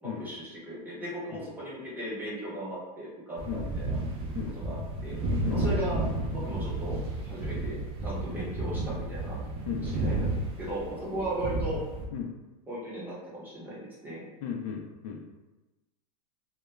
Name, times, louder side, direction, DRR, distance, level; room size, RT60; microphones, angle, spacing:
voice 1, 0.0-4.0 4.5-4.8 5.0-5.2 5.5-6.0 6.3-7.0 7.2-7.8 8.0-9.4 9.8-11.8 12.7-14.2, right 1 dB, 10° right, -8 dB, 0.8 m, -37 dB
sound 1, 3.4-12.1, right 2 dB, 30° right, 0.4 m, -32 dB
voice 2, 14.4-15.2, left 8 dB, 65° left, 2 dB, 0.5 m, -35 dB
2.2 x 2.1 x 3.1 m, 1.1 s
supercardioid pair, 135°, 20 cm